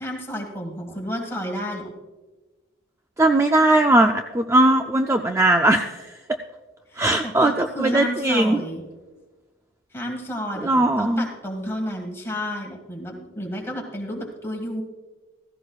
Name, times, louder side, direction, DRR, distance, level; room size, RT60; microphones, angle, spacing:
voice 1, 0.0-1.9 6.9-8.8 9.9-14.8, equal, 10° left, 0 dB, 1.8 m, -31 dB
voice 2, 3.2-6.1 7.0-8.6 10.6-11.2, right 1 dB, 15° right, 5 dB, 0.3 m, -19 dB
15.5 x 15.0 x 2.4 m, 1.2 s
head